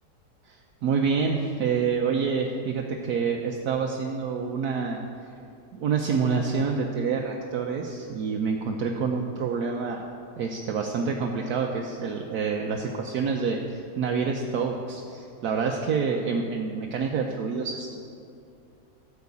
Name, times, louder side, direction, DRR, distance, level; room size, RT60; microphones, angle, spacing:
voice 1, 0.5-5.0 5.7-10.1 10.4-17.9, right 5 dB, 70° right, 1 dB, 1.3 m, -27 dB
13.5 x 5.8 x 8.4 m, 2.5 s
omnidirectional pair, 1.7 m